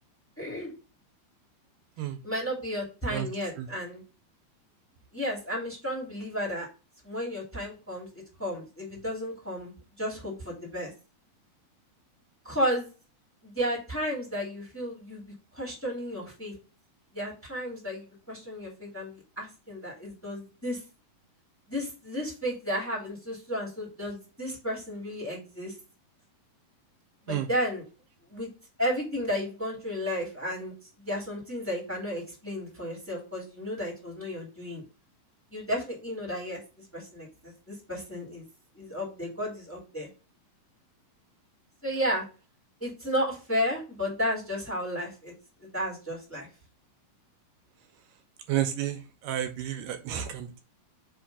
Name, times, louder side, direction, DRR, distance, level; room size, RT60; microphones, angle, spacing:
voice 1, 0.4-0.7 2.2-4.0 5.1-6.7 7.0-9.7 10.0-10.9 12.4-12.9 13.4-15.2 15.5-16.5 17.1-20.8 21.7-25.7 27.2-27.8 28.3-28.5 28.8-30.7 31.0-34.8 35.5-36.6 36.9-38.4 38.7-40.1 41.8-42.2 42.8-45.3 45.6-46.5, equal, 5° left, -3 dB, 2.2 m, -33 dB
voice 2, 48.5-50.6, right 11 dB, 80° right, 8 dB, 2.3 m, -31 dB
5.2 x 3.6 x 5.4 m, 0.33 s
omnidirectional pair, 3.9 m